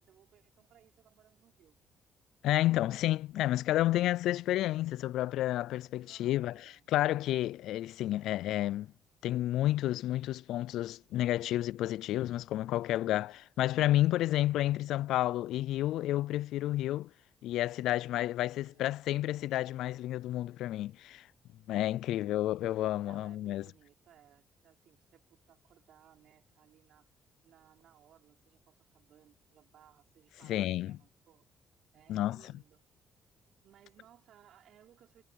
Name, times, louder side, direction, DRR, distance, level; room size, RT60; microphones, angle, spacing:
voice 1, 0.0-1.8 6.0-6.9 18.1-19.0 22.0-22.4 23.0-27.1 27.4-31.5 31.9-32.8 33.6-35.2, right 11 dB, 75° right, 5.1 m, -63 dB
voice 2, 2.4-8.9 9.2-17.1 17.4-21.3 21.7-23.6 30.5-31.0 32.1-32.4, left 14 dB, 85° left, 0.3 m, -30 dB
cardioid pair, 90°, 0 cm